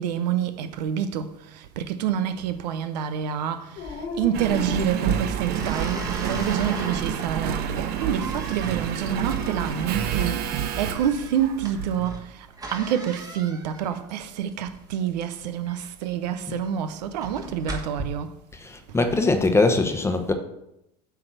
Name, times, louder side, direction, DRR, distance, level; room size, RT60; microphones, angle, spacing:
voice 1, 0.0-18.4 18.9-19.0, right 9 dB, 85° right, 0.7 m, -28 dB
Dog, 3.7-5.7 6.3-7.1 9.4-10.2, left 3 dB, 55° left, 1.2 m, -39 dB
sound 1, 3.8-18.0, right 2 dB, 15° right, 1.3 m, -39 dB
Engine, 4.3-12.2 12.8-12.9, right 9 dB, 50° right, 0.8 m, -29 dB
voice 2, 18.6-20.3, left 3 dB, 10° left, 0.9 m, -21 dB
8.3 x 3.4 x 6.1 m
supercardioid pair, 105°, 21 cm